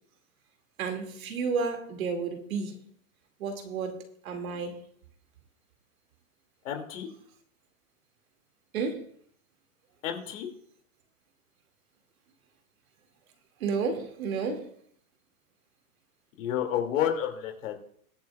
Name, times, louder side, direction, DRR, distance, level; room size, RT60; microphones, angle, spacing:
voice 1, 0.8-2.8 3.4-4.8 8.7-9.1 13.6-14.7, right 5 dB, 75° right, 2.4 m, -31 dB
voice 2, 6.6-7.1 10.0-10.5 16.4-17.8, left 9 dB, 65° left, 2.6 m, -30 dB
21.5 x 8.6 x 2.4 m
hypercardioid pair, 120°, 42 cm